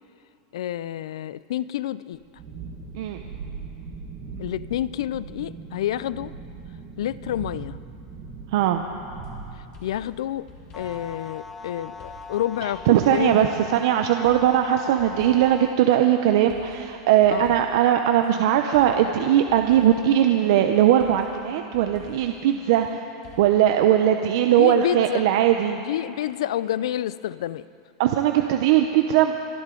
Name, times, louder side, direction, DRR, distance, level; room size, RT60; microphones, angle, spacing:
voice 1, 0.5-2.2 4.4-6.3 7.0-7.8 9.6-10.5 10.7-13.5 17.3-17.5 24.6-25.2 25.8-27.7, left 12 dB, 85° left, 18 dB, 0.4 m, -29 dB
Thunderstorm, 2.1-13.7, right 4 dB, 30° right, 1.5 m, -41 dB
voice 2, 8.5-8.8 12.9-23.1 23.4-25.8 28.0-29.3, right 11 dB, 50° right, 5 dB, 0.6 m, -20 dB
sound 1, 9.1-9.3 9.7-11.2 12.0-13.8 14.2-15.7 16.5-18.3 18.7-20.2 21.0-22.8 23.2-23.4, left 3 dB, 30° left, 1.9 m, -49 dB
sound 2, 10.7-15.7, left 4 dB, 10° left, 0.4 m, -40 dB
25.0 x 11.0 x 3.8 m, 2.7 s
supercardioid pair, 180°, 3 cm